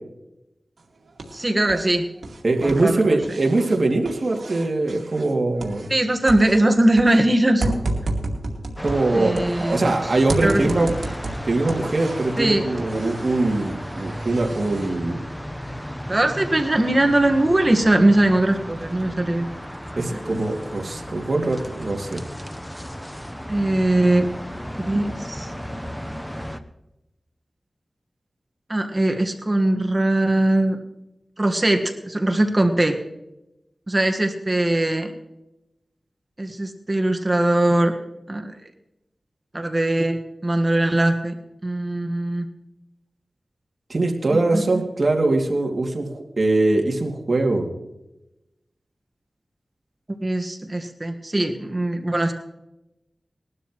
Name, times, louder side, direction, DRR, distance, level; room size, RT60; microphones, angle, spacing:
sound 1, 0.8-1.9 2.2-6.0 6.3-9.9 10.3-12.4 12.8-14.9, right 2 dB, 85° right, 2.2 m, -32 dB
voice 1, 1.3-2.1 2.6-2.9 5.9-7.7 9.1-9.8 10.4-10.8 12.4-12.6 16.1-19.5 19.9-20.2 23.5-24.3 24.8-25.5 28.7-30.8 31.4-32.9 33.9-35.1 36.4-37.9 38.3-38.5 39.5-40.2 40.4-41.4 41.6-42.5 44.3-44.8 50.2-52.3, right 1 dB, 30° right, 4 dB, 1.5 m, -20 dB
voice 2, 2.4-5.9 8.8-10.9 11.4-15.2 20.0-22.2 43.9-47.7, right 2 dB, 55° right, 1 dB, 2.5 m, -22 dB
sound 2, 8.8-26.6, equal, 5° left, 0.9 m, -34 dB
20.5 x 12.0 x 3.1 m, 0.92 s
wide cardioid pair, 70°, 0 cm